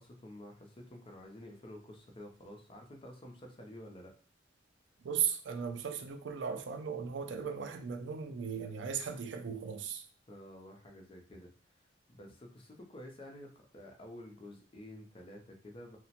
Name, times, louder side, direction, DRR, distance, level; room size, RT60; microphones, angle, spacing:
voice 1, 0.0-4.1 10.3-11.7 12.1-16.0, left 1 dB, 30° left, 0.5 m, -50 dB
voice 2, 5.0-10.1, right 7 dB, 70° right, 0.4 m, -37 dB
2.8 x 2.1 x 2.8 m
head